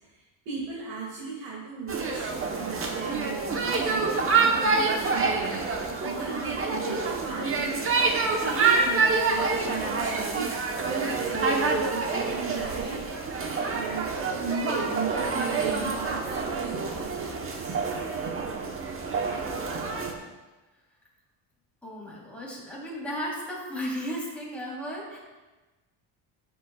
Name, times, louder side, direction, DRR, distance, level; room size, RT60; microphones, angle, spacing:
voice 1, 0.5-5.4 6.0-7.9 8.4-13.5 13.7-14.1 14.4-17.8, right 5 dB, 70° right, -5 dB, 2.3 m, -36 dB
sound 1, 1.9-20.1, right 4 dB, 30° right, 1.0 m, -27 dB
voice 2, 21.8-25.2, equal, 5° left, -6 dB, 3.1 m, -35 dB
15.0 x 7.7 x 2.3 m, 1.2 s
cardioid pair, 155°, 46 cm